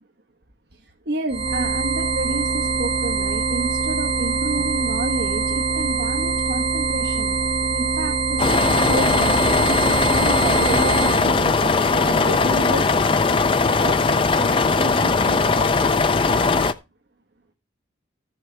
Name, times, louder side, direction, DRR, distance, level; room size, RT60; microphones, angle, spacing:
voice 1, 1.1-7.3 7.7-12.9 13.7-16.0 16.3-16.5, right 2 dB, 55° right, 2 dB, 1.1 m, -30 dB
sound 1, 1.3-11.3, right 4 dB, 30° right, 1.2 m, -23 dB
sound 2, 8.4-16.7, left 4 dB, 25° left, 0.4 m, -19 dB
14.0 x 6.3 x 3.2 m, 0.25 s
head